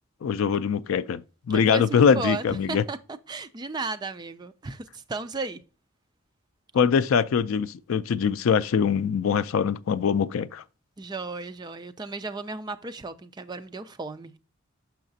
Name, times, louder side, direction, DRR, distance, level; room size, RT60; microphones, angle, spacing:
voice 1, 0.2-1.2 1.5-2.8 6.7-10.6, left 6 dB, 80° left, 0.4 m, -23 dB
voice 2, 1.5-5.6 11.0-14.4, right 3 dB, 20° right, 0.3 m, -35 dB
6.4 x 5.7 x 2.6 m
head